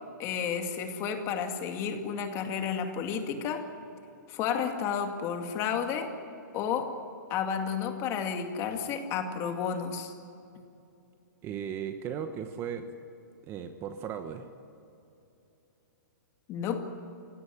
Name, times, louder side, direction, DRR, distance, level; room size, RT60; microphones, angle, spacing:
voice 1, 0.2-3.7 4.3-6.1 6.5-7.0 7.3-10.1 16.5-16.9, left 7 dB, 25° left, 5 dB, 2.2 m, -31 dB
voice 2, 11.4-12.9 13.4-14.5, right 8 dB, 25° right, 8 dB, 1.1 m, -36 dB
27.0 x 17.5 x 9.9 m, 2.8 s
hypercardioid pair, 155°, 10 cm